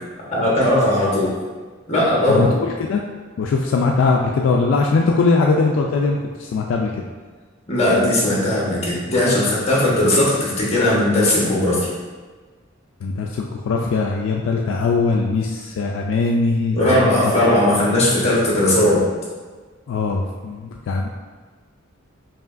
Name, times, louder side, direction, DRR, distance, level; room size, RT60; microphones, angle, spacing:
voice 1, 0.3-1.3 1.9-2.5 7.7-11.9 16.8-19.0, left 1 dB, 35° left, -5 dB, 1.1 m, -18 dB
voice 2, 2.3-3.0 3.4-6.9 13.0-17.1 17.8-17.9 19.9-21.1, left 3 dB, 70° left, 1 dB, 0.3 m, -20 dB
4.8 x 3.0 x 2.5 m, 1.4 s
head